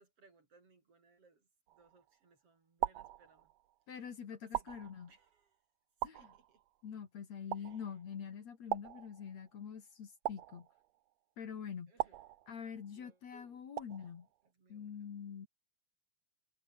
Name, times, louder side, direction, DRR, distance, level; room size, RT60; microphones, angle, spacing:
voice 1, 0.0-3.5 3.9-4.0 4.3-5.5 6.0-6.6 7.6-7.9 11.9-12.2 13.0-13.6 14.5-15.0, right 4 dB, 40° right, 4.7 m, -67 dB
sound 1, 1.7-2.2 2.8-3.8 4.5-5.4 6.0-6.9 7.5-8.2 8.7-9.6 10.2-11.1 12.0-13.0 13.8-14.4, right 14 dB, 70° right, 1.7 m, -41 dB
voice 2, 3.9-5.1 6.0-6.3 6.8-10.7 11.4-11.9 12.5-14.3 14.7-15.5, left 7 dB, 55° left, 3.3 m, -45 dB
omnidirectional pair, 3.9 m